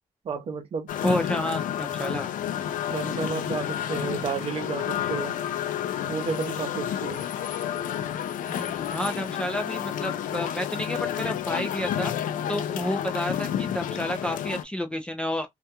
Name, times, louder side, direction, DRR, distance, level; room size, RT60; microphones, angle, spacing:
voice 1, 0.2-0.9 2.9-5.4 6.1-7.2, right 5 dB, 45° right, 0.6 m, -32 dB
sound 1, 0.9-14.6, left 10 dB, 75° left, 0.4 m, -30 dB
voice 2, 1.0-2.3 8.5-12.1 12.5-15.5, equal, 5° left, 0.4 m, -30 dB
2.4 x 2.1 x 2.7 m
wide cardioid pair, 170°, 14 cm